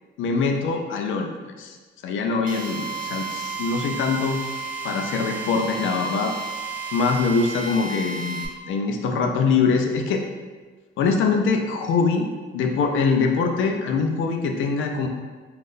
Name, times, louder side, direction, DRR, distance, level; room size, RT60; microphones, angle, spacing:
voice 1, 0.2-1.3 1.6-1.7 2.0-4.4 4.8-6.3 6.9-8.4 8.7-10.2 11.0-12.3 12.5-15.1, left 4 dB, 80° left, 3 dB, 0.4 m, -23 dB
Drill, 2.5-8.5, right 4 dB, 45° right, 0.5 m, -32 dB
3.5 x 2.3 x 2.6 m, 1.4 s
cardioid pair, 90°, 20 cm